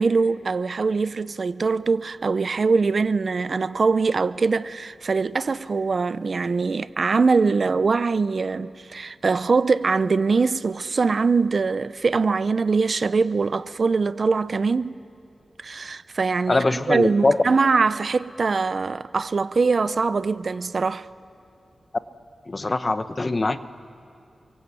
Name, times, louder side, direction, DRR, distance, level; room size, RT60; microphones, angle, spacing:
voice 1, 0.0-14.9 15.6-21.1, right 4 dB, 55° right, 0.7 m, -22 dB
voice 2, 16.5-17.4 22.5-23.6, left 2 dB, 35° left, 1.1 m, -22 dB
28.5 x 24.0 x 8.5 m
wide cardioid pair, 75°, 0 cm